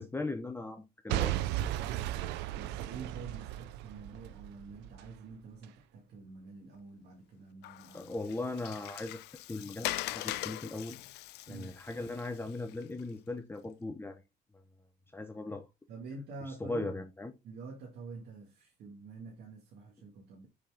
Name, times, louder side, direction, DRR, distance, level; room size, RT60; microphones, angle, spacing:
voice 1, 0.0-1.3 7.9-11.0 11.5-14.2 15.1-15.7 16.6-17.3, left 2 dB, 15° left, 0.9 m, -38 dB
Boom / Shatter / Crushing, 1.1-5.1 5.6-5.7, right 14 dB, 90° right, 0.5 m, -35 dB
voice 2, 1.8-8.1 11.5-11.7 15.9-16.9 17.4-20.5, right 4 dB, 70° right, 1.9 m, -47 dB
Water, 7.6-13.0, left 17 dB, 85° left, 0.5 m, -41 dB
6.5 x 4.3 x 3.5 m
cardioid pair, 110°, 17 cm